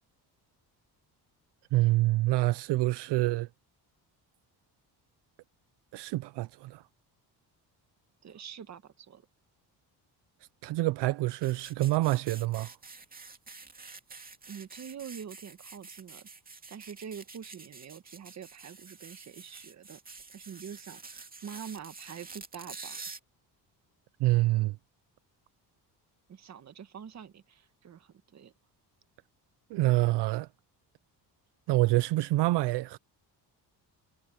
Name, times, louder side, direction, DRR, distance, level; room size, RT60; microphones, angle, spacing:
voice 1, 1.7-3.5 5.9-6.8 10.6-12.7 24.2-24.8 29.7-30.5 31.7-33.0, right 18 dB, 75° right, 0.5 m, -26 dB
voice 2, 8.2-9.2 14.5-16.3 16.7-20.0 20.3-23.0 26.3-28.5, right 8 dB, 40° right, 1.5 m, -45 dB
sound 1, 11.4-23.2, right 4 dB, 20° right, 2.4 m, -48 dB
cardioid pair, 140°, 41 cm